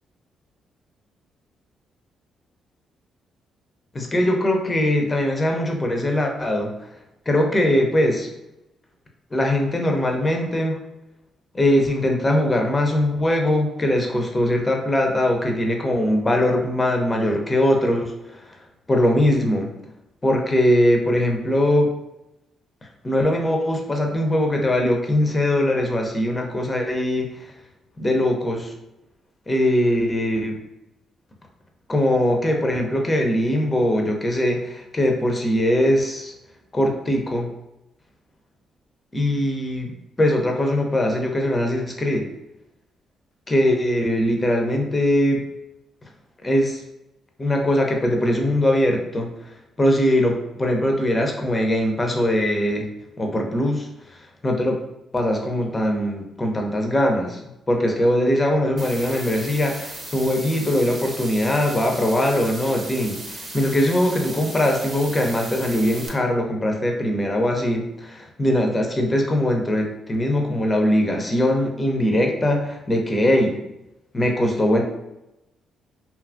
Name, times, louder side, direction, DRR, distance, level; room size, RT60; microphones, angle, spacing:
voice 1, 3.9-6.7 7.3-8.3 9.3-10.8 11.5-18.4 18.9-19.7 20.2-21.9 23.0-27.3 28.0-28.7 29.5-30.6 31.9-36.3 36.7-37.5 39.1-39.9 40.2-42.3 43.5-45.4 46.4-46.8 47.4-49.3 49.8-52.9 53.2-53.9 54.4-54.8 55.1-57.4 57.7-63.2 63.5-73.6 74.1-74.8, left 1 dB, 25° left, 2 dB, 0.6 m, -21 dB
sound 1, 58.8-66.1, right 2 dB, 45° right, 0.8 m, -36 dB
2.7 x 2.3 x 2.5 m, 0.90 s
hypercardioid pair, 50°, 0 cm